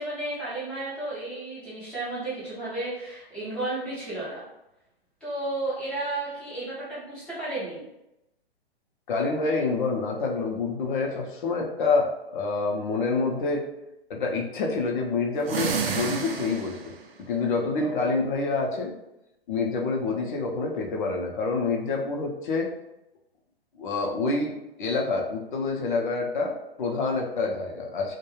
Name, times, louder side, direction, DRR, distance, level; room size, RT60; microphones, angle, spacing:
voice 1, 0.0-4.5 5.2-7.9 17.8-18.2, right 2 dB, 5° left, -9 dB, 0.4 m, -33 dB
voice 2, 9.1-13.7 14.1-18.9 19.5-22.7 23.8-24.5 24.8-28.1, left 3 dB, 50° left, 1 dB, 0.6 m, -27 dB
sound 1, 15.4-17.0, right 6 dB, 65° right, 0.5 m, -30 dB
2.3 x 2.2 x 3.0 m, 0.89 s
hypercardioid pair, 135°, 32 cm